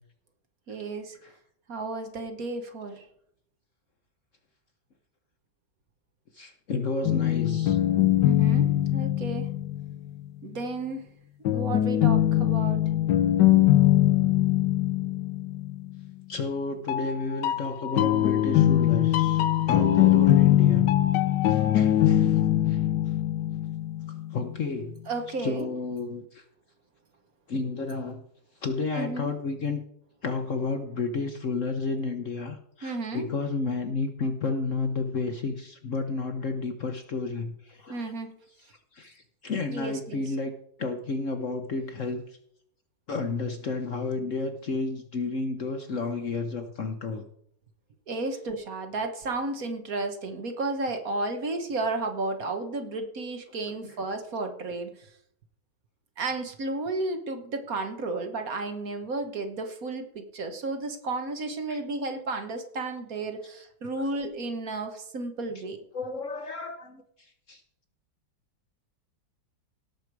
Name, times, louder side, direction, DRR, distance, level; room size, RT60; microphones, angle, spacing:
voice 1, 0.7-1.1 1.7-3.0 8.2-9.5 10.4-11.0 11.4-12.8 25.1-25.7 28.9-29.3 32.8-33.3 37.9-38.3 39.7-40.2 48.1-54.9 56.2-65.8, right 3 dB, 55° right, 1.5 m, -33 dB
voice 2, 6.4-7.8 16.3-20.9 21.5-22.4 22.7-22.8 24.3-25.0 25.4-26.4 27.5-28.2 28.6-29.8 30.2-38.1 39.0-40.5 40.8-42.2 43.1-47.2 61.7-61.8 65.9-67.0 67.5-67.6, left 3 dB, 50° left, 1.0 m, -31 dB
sound 1, 7.0-10.2 11.4-16.1 16.9-24.6, left 13 dB, 75° left, 1.3 m, -22 dB
17.0 x 6.6 x 4.6 m
omnidirectional pair, 2.0 m